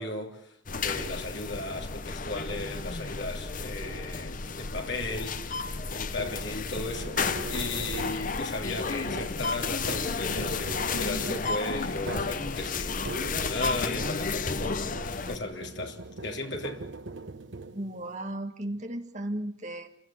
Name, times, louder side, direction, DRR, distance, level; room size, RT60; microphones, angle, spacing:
voice 1, 0.0-16.9, left 2 dB, 70° left, 3.1 m, -36 dB
sound 1, 0.7-15.4, left 4 dB, 45° left, 1.0 m, -32 dB
sound 2, 1.0-1.5 2.5-3.0 3.8-4.4 6.1-14.6 14.9-18.1, right 3 dB, 75° right, 1.1 m, -41 dB
voice 2, 17.7-19.9, right 1 dB, 40° right, 1.9 m, -35 dB
29.0 x 16.0 x 7.6 m
head